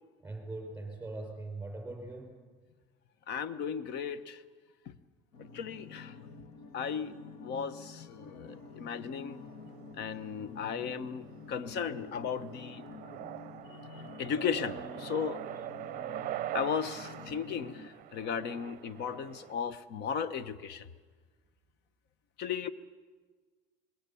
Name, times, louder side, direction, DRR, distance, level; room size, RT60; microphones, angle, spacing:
voice 1, 0.2-2.3, right 2 dB, 10° right, 2 dB, 5.3 m, -41 dB
voice 2, 3.3-4.4 4.9-5.0 5.5-6.2 6.7-7.2 7.4-9.4 9.9-12.8 13.7-15.4 16.5-20.9 22.4-22.7, left 7 dB, 55° left, 14 dB, 1.1 m, -36 dB
sound 1, 5.3-17.9, left 4 dB, 80° left, 1.8 m, -49 dB
sound 2, 8.5-19.5, right 14 dB, 40° right, 0.7 m, -44 dB
26.5 x 21.0 x 7.0 m, 1.5 s
cardioid pair, 140°, 21 cm